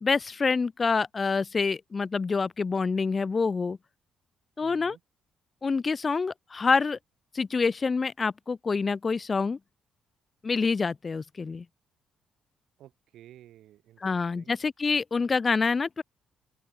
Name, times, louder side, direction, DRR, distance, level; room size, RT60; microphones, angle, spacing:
voice 1, 0.0-3.8 4.6-5.0 5.6-7.0 7.3-9.6 10.4-11.7 14.0-16.0, left 4 dB, 35° left, 0.3 m, -27 dB
voice 2, 4.6-5.0 12.8-14.6, right 13 dB, 80° right, 5.7 m, -53 dB
open air
cardioid pair, 90°, 0 cm